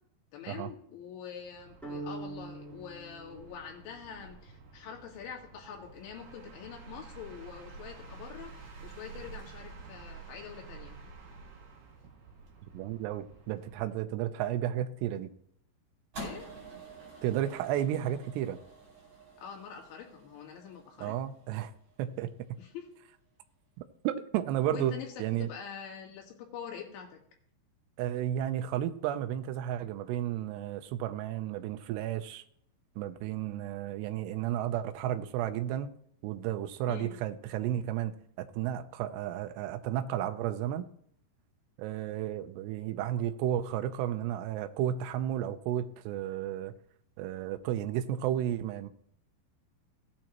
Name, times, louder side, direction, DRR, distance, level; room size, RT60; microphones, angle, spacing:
voice 1, 0.3-11.0 16.2-16.5 19.4-21.1 22.6-22.8 24.7-25.1 25.4-27.2 36.9-37.2, left 7 dB, 80° left, 0 dB, 4.3 m, -45 dB
sound 1, 1.4-14.0, right 4 dB, 55° right, 3.1 m, -50 dB
sound 2, 1.8-4.1, right 2 dB, ahead, 2.9 m, -43 dB
voice 2, 12.7-15.3 17.2-18.6 21.0-21.7 22.0-22.3 23.8-25.5 28.0-32.4 33.0-35.9 36.2-40.9 41.8-46.7 47.2-48.9, right 11 dB, 80° right, 8 dB, 2.7 m, -33 dB
sound 3, 16.1-22.5, right 2 dB, 40° right, 6.3 m, -49 dB
16.5 x 8.6 x 3.0 m, 0.67 s
omnidirectional pair, 5.4 m